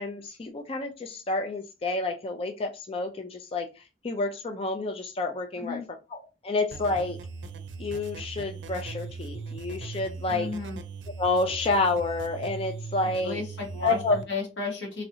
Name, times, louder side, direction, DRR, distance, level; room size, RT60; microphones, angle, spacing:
voice 1, 0.0-3.7 4.0-5.8 6.1-7.2 7.8-10.5 11.2-13.4 13.8-14.2, left 3 dB, 30° left, 4 dB, 0.4 m, -29 dB
sound 1, 6.7-14.2, right 4 dB, 85° right, 0.5 m, -39 dB
voice 2, 10.3-10.8 13.0-15.0, left 3 dB, 85° left, -1 dB, 1.4 m, -33 dB
3.1 x 2.7 x 2.7 m, 0.29 s
head